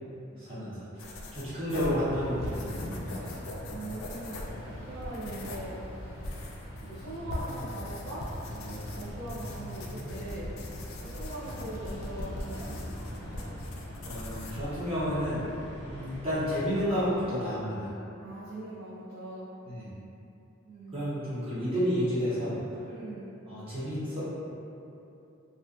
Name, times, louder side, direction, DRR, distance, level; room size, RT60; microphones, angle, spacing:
voice 1, 0.4-3.4 5.2-5.3 14.0-15.5 15.8-17.9 19.7-19.9 20.9-22.6 23.5-24.2, equal, 30° right, -13 dB, 0.7 m, -31 dB
sound 1, 1.0-15.8, left 1 dB, 90° left, 0.3 m, -42 dB
sound 2, 1.7-17.2, equal, 55° left, 0.7 m, -42 dB
voice 2, 3.7-4.4 4.8-5.8 6.8-10.5 11.0-12.9 18.2-19.5 20.7-21.0 22.8-23.3, right 1 dB, 85° right, -11 dB, 0.5 m, -41 dB
2.5 x 2.3 x 2.4 m, 2.8 s
head